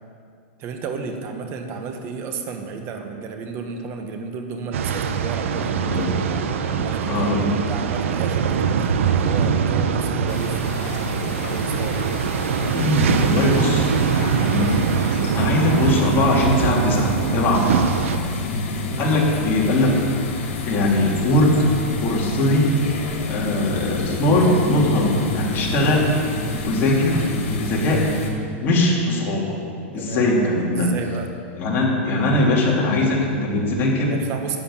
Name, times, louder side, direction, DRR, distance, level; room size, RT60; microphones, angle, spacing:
voice 1, 0.6-6.4 6.8-12.1 18.9-19.1 25.5-25.7 29.9-30.3 30.7-31.3 34.1-34.6, right 5 dB, 40° right, 4 dB, 1.6 m, -33 dB
sound 1, 4.7-18.2, right 7 dB, 80° right, 0.9 m, -23 dB
voice 2, 5.8-7.6 12.7-14.8 15.3-17.7 19.0-20.0 20.6-21.5 22.0-22.7 23.3-26.1 26.6-27.2 27.6-28.0 28.6-29.6 29.9-30.9 31.6-34.1, left 1 dB, 30° left, -3 dB, 3.2 m, -21 dB
sound 2, 10.3-28.3, left 2 dB, 75° left, 2.4 m, -29 dB
11.5 x 7.3 x 8.9 m, 2.3 s
supercardioid pair, 140°, 7 cm